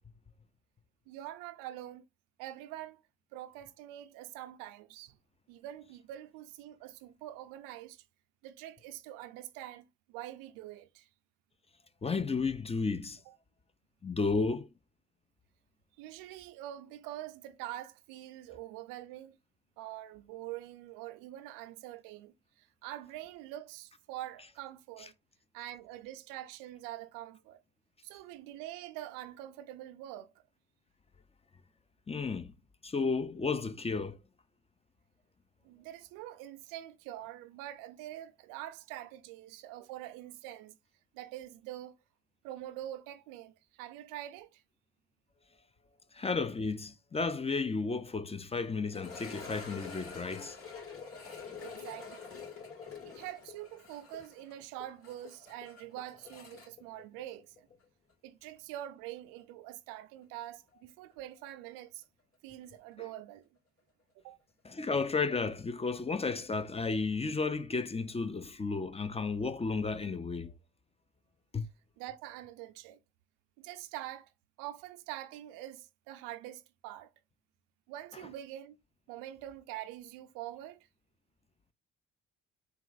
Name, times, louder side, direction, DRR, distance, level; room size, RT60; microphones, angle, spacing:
voice 1, 1.1-2.0 2.4-3.0 3.3-5.2 5.5-8.0 8.4-11.1 13.3-13.4 16.0-19.4 19.8-25.1 25.5-27.6 28.0-30.3 35.6-40.8 41.1-42.0 42.4-44.6 51.6-52.4 53.0-57.7 58.2-62.0 62.4-63.5 64.2-64.4 72.0-73.0 73.6-74.3 74.6-77.1 77.9-78.8 79.1-80.9, right 13 dB, 90° right, 0.5 m, -45 dB
voice 2, 12.0-13.2 14.0-14.7 32.1-32.5 32.8-34.2 46.1-50.6 64.6-70.5 71.5-71.7, left 4 dB, 20° left, 0.5 m, -33 dB
sound 1, 48.9-57.8 58.1-58.2 58.8-58.9 61.5-61.6, left 5 dB, 45° left, 2.9 m, -47 dB
4.1 x 2.4 x 3.9 m
supercardioid pair, 60°, 32 cm